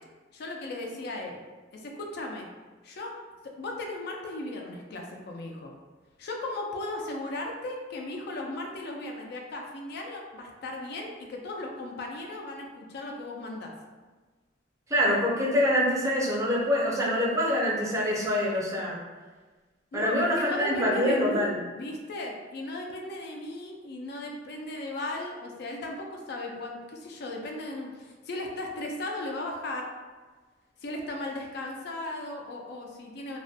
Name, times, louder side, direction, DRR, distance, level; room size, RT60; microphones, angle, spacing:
voice 1, 0.3-1.4 1.7-2.5 2.8-3.1 3.4-5.7 6.2-13.7 19.9-29.9 30.8-33.4, left 2 dB, 60° left, 1 dB, 0.4 m, -36 dB
voice 2, 14.9-19.0 19.9-21.6, equal, 15° right, -4 dB, 0.4 m, -25 dB
2.3 x 2.1 x 2.6 m, 1.3 s
head